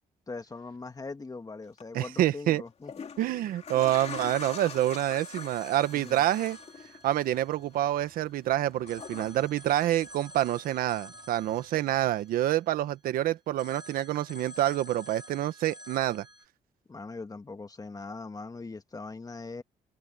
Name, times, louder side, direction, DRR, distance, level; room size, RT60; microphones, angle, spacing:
voice 1, 0.3-3.1 5.9-6.3 16.9-19.6, left 3 dB, 25° left, 2.2 m, -41 dB
sound 1, 1.6-1.8 2.7-10.7 11.0-12.1 12.5-12.6, left 6 dB, 45° left, 2.6 m, -45 dB
voice 2, 1.9-2.6 3.2-6.6 7.0-16.2, right 13 dB, 85° right, 1.2 m, -27 dB
Telephone, 4.1-8.4 8.9-13.1 13.6-16.5, equal, 30° right, 3.7 m, -49 dB
cardioid pair, 85°, 15 cm